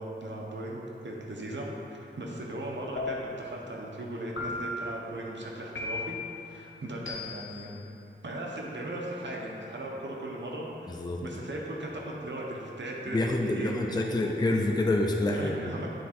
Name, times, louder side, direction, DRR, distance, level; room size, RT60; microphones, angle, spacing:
voice 1, 0.0-7.7 8.2-14.1 14.5-14.6 15.3-15.9, right 1 dB, 65° right, -2 dB, 1.0 m, -38 dB
sound 1, 3.0-3.5 4.4-4.9 5.7-6.3 7.0-7.6, left 3 dB, 70° left, 0.9 m, -36 dB
voice 2, 10.9-11.2 13.1-15.8, left 2 dB, 20° left, 1 dB, 0.5 m, -27 dB
9.3 x 3.6 x 4.4 m, 2.9 s
wide cardioid pair, 75°, 20 cm